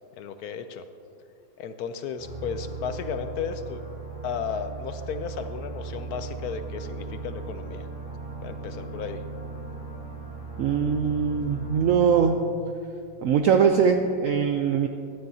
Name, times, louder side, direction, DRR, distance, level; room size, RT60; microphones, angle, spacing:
voice 1, 0.2-0.8 1.6-3.8 4.2-7.9 8.4-9.2, left 6 dB, 70° left, 9 dB, 0.9 m, -34 dB
sound 1, 2.2-12.3, right 4 dB, 5° right, 2.9 m, -37 dB
voice 2, 10.6-12.4 13.2-14.9, right 6 dB, 85° right, 5 dB, 0.7 m, -21 dB
16.5 x 12.0 x 2.7 m, 2.5 s
omnidirectional pair, 2.0 m